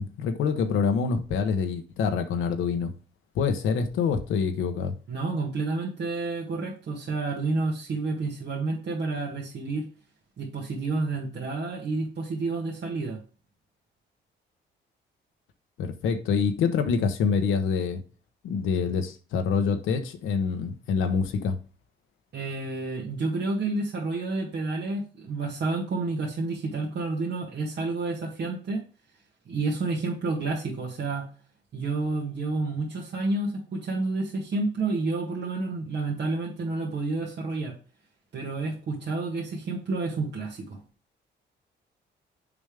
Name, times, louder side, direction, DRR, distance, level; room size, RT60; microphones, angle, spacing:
voice 1, 0.0-2.9 3.3-4.9 15.8-18.0 18.4-21.6, left 5 dB, 85° left, 1.1 m, -26 dB
voice 2, 5.1-9.9 10.4-13.2 22.3-28.8 29.5-31.3 31.7-37.8 38.3-40.8, right 3 dB, 60° right, 2.0 m, -30 dB
7.1 x 5.2 x 3.4 m
cardioid pair, 90°, 20 cm